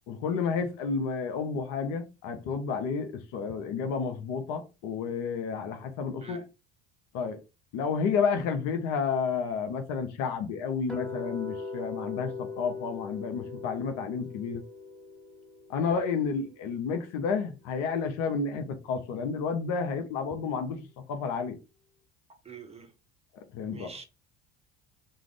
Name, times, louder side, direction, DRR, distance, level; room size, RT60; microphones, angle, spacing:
voice 1, 0.1-6.4 7.1-7.4 7.7-14.6 15.7-20.8 21.1-21.6 23.5-24.0, left 5 dB, 65° left, 0.7 m, -31 dB
sound 1, 10.9-17.0, left 4 dB, ahead, 1.0 m, -40 dB
voice 2, 22.4-22.9 23.7-24.0, right 5 dB, 20° right, 0.7 m, -45 dB
2.4 x 2.4 x 3.3 m
hypercardioid pair, 70°, 31 cm